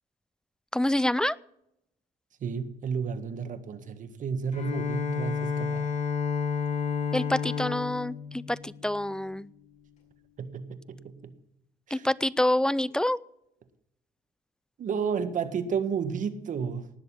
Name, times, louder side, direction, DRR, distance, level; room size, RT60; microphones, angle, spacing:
voice 1, 0.7-1.4 7.1-9.5 11.9-13.2, left 1 dB, 5° left, 20 dB, 0.4 m, -27 dB
voice 2, 2.4-5.9 10.4-11.3 11.9-12.1 14.8-16.9, right 6 dB, 50° right, 10 dB, 1.8 m, -32 dB
Bowed string instrument, 4.5-9.3, left 6 dB, 45° left, 6.7 m, -31 dB
19.0 x 6.9 x 8.6 m, 0.80 s
cardioid pair, 110°, 17 cm